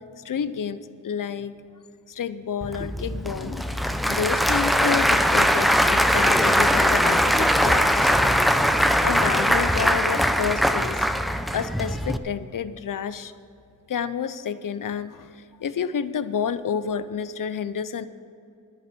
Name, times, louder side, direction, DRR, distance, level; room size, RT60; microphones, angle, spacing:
voice 1, 0.2-0.8 1.0-1.5 2.1-3.8 4.1-8.4 9.0-11.1 11.5-13.3 13.9-15.3 15.6-18.1, left 7 dB, 75° left, 13 dB, 0.7 m, -29 dB
Applause / Crowd, 2.6-12.2, equal, ahead, 0.6 m, -21 dB
10.5 x 9.6 x 7.7 m, 2.6 s
cardioid pair, 60°, 33 cm